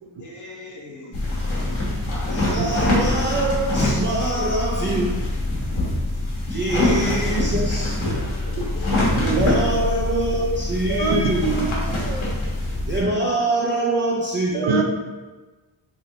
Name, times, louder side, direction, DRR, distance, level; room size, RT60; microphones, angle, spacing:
voice 1, 0.2-1.6 2.0-3.0 5.6-6.2 6.5-6.6 8.1-8.9 13.2-13.4, left 1 dB, 40° left, -1 dB, 0.7 m, -40 dB
sound 1, 1.1-13.0, left 2 dB, 70° left, 1.3 m, -24 dB
voice 2, 2.3-5.2 6.5-8.0 9.2-11.7 12.9-14.8, right 2 dB, 25° right, -3 dB, 0.3 m, -24 dB
voice 3, 10.9-12.4 14.5-14.8, right 4 dB, 70° right, 2 dB, 0.6 m, -25 dB
3.5 x 2.8 x 3.6 m, 1.2 s
wide cardioid pair, 160°, 49 cm